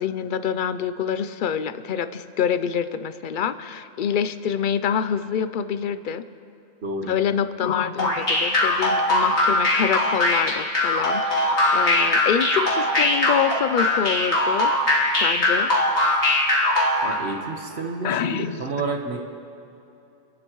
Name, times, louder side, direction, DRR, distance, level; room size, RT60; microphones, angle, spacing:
voice 1, 0.0-6.2 7.0-14.7 15.2-15.7 18.0-18.6, left 8 dB, 60° left, 12 dB, 0.6 m, -26 dB
voice 2, 6.8-7.1 17.0-19.2, right 3 dB, 70° right, 3 dB, 1.5 m, -30 dB
sound 1, 8.0-17.1, left 1 dB, 85° left, 2.4 m, -20 dB
27.5 x 11.5 x 3.1 m, 2.8 s
omnidirectional pair, 1.1 m